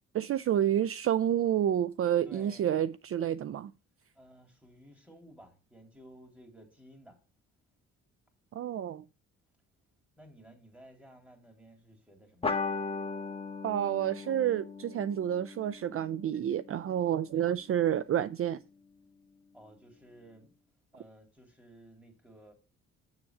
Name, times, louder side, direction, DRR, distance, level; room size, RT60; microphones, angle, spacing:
voice 1, 0.1-3.7 8.5-9.0 13.6-18.6, right 10 dB, 50° right, 0.5 m, -29 dB
voice 2, 2.2-2.8 4.2-7.2 10.2-12.5 19.5-20.5 20.9-22.5, right 1 dB, 5° right, 3.6 m, -55 dB
sound 1, 12.4-17.3, left 4 dB, 20° left, 1.4 m, -38 dB
7.8 x 7.1 x 4.8 m
cardioid pair, 90°, 30 cm